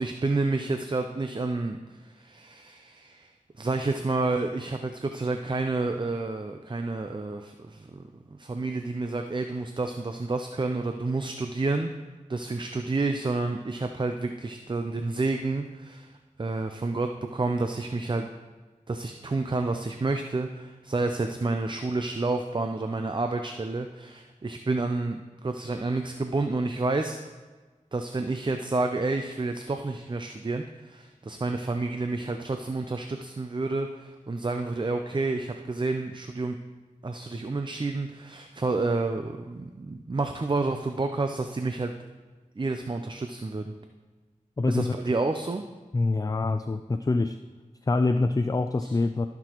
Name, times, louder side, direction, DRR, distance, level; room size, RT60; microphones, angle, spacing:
voice 1, 0.0-3.3 3.6-8.0 8.3-11.9 12.3-16.1 16.4-18.3 18.9-27.2 27.9-36.6 37.0-41.9 42.6-43.7 44.7-45.6 48.8-49.0, right 3 dB, 35° right, 6 dB, 0.5 m, -29 dB
voice 2, 44.6-44.9 45.9-47.4 47.9-49.3, left 3 dB, 25° left, 9 dB, 0.3 m, -25 dB
16.0 x 6.0 x 3.0 m, 1.3 s
wide cardioid pair, 45°, 14 cm